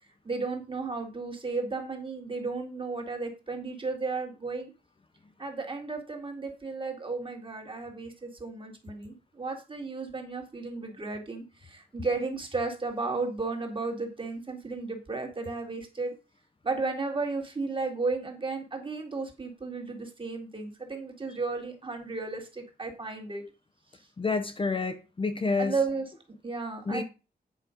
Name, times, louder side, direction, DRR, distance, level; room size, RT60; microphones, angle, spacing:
voice 1, 0.2-4.7 5.4-16.1 16.6-23.4 25.6-26.1 26.4-27.0, right 3 dB, 30° right, 2.2 m, -34 dB
voice 2, 24.2-25.7 26.9-27.0, left 4 dB, 30° left, 0.7 m, -28 dB
9.2 x 5.2 x 5.1 m
wide cardioid pair, 165°, 17 cm